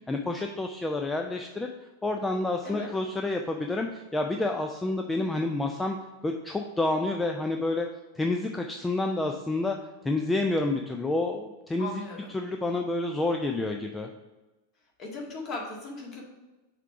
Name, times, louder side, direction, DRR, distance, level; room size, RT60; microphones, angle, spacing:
voice 1, 0.1-1.7 2.0-6.0 6.2-7.9 8.2-9.8 10.0-12.0 12.3-14.1, left 2 dB, 10° left, 4 dB, 0.4 m, -29 dB
voice 2, 11.8-12.3 15.0-16.2, left 3 dB, 35° left, -1 dB, 1.8 m, -37 dB
5.8 x 3.5 x 5.7 m, 1.1 s
figure-of-eight pair, 90°, 0 cm